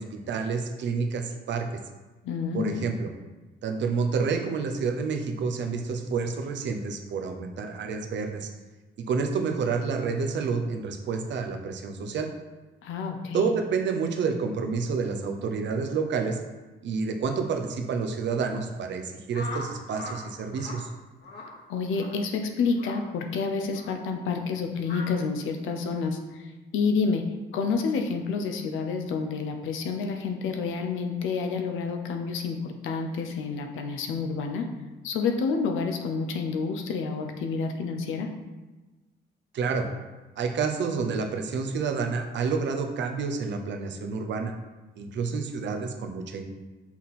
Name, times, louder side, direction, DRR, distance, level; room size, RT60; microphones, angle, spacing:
voice 1, 0.0-1.7 2.5-3.1 3.6-8.5 9.0-12.3 13.3-16.4 16.8-20.9 39.5-39.9 40.4-44.5 45.0-46.5, right 5 dB, 65° right, 5 dB, 0.8 m, -29 dB
voice 2, 2.2-2.8 12.8-13.5 21.7-26.5 26.7-27.2 27.5-34.6 35.0-38.3, left 4 dB, 85° left, 4 dB, 0.7 m, -29 dB
sound 1, 19.3-20.2 20.5-20.8 21.2-21.5 21.9-22.1 22.8-23.0 23.7-23.9 24.8-25.1, left 3 dB, 60° left, 1.3 m, -39 dB
5.7 x 4.3 x 4.3 m, 1.2 s
cardioid pair, 90°, 20 cm